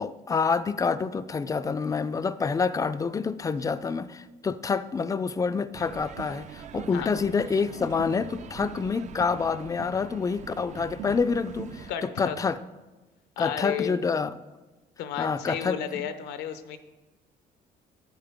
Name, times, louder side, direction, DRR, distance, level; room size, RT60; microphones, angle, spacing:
voice 1, 0.0-12.6 13.4-14.3 15.2-16.1, left 5 dB, 20° left, 13 dB, 0.4 m, -27 dB
sound 1, 5.7-11.9, right 9 dB, 45° right, 0.4 m, -42 dB
voice 2, 11.9-12.4 13.4-14.0 15.0-16.8, left 9 dB, 80° left, 10 dB, 0.8 m, -33 dB
10.5 x 8.4 x 3.5 m, 1.1 s
cardioid pair, 110°, 17 cm